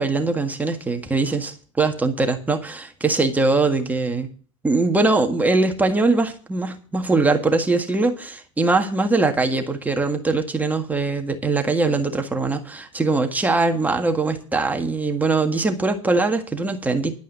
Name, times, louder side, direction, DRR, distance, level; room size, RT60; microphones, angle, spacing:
voice 1, 0.0-4.3 4.6-17.2, right 3 dB, 10° right, 1.7 m, -21 dB
11.5 x 5.4 x 8.8 m
supercardioid pair, 115°, 16 cm